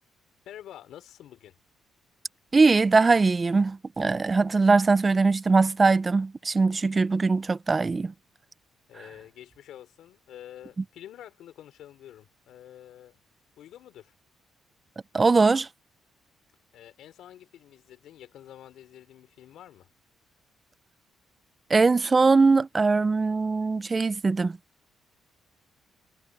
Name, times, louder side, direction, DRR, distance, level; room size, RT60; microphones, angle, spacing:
voice 1, 0.4-1.6 8.9-13.2 13.6-14.1 16.7-19.9, left 11 dB, 80° left, 4.0 m, -48 dB
voice 2, 2.5-8.1 15.1-15.7 21.7-24.6, right 4 dB, 30° right, 0.4 m, -21 dB
cardioid pair, 90°, 0 cm